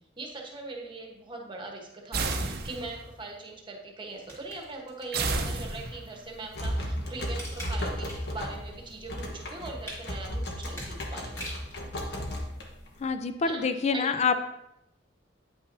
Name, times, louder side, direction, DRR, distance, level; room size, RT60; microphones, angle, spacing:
voice 1, 0.2-11.5 13.4-14.2, right 2 dB, 25° right, 1 dB, 1.1 m, -41 dB
sound 1, 2.1-3.1 5.1-6.2, right 3 dB, 55° right, 0.6 m, -31 dB
sound 2, 4.1-5.9 6.4-8.4 8.8-11.8 12.3-12.4, equal, 15° left, 2.0 m, -44 dB
sound 3, 6.2-13.1, equal, 65° left, 1.1 m, -35 dB
voice 2, 13.0-14.3, left 5 dB, 35° left, 9 dB, 0.4 m, -26 dB
9.0 x 5.6 x 2.6 m, 0.87 s
head